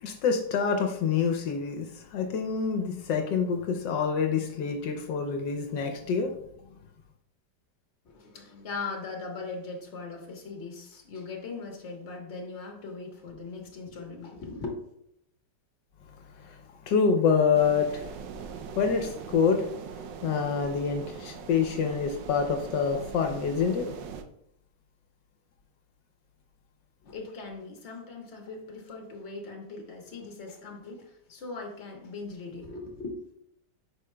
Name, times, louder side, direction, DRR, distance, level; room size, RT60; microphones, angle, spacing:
voice 1, 0.0-6.3 16.5-16.6 16.9-18.0 18.8-19.7 20.2-24.0, left 6 dB, 80° left, 4 dB, 1.4 m, -26 dB
voice 2, 8.0-14.7 27.0-33.1, left 4 dB, 40° left, 1 dB, 1.4 m, -40 dB
sound 1, 17.5-24.2, right 6 dB, 80° right, 1.3 m, -41 dB
8.4 x 5.4 x 2.2 m, 0.73 s
omnidirectional pair, 2.0 m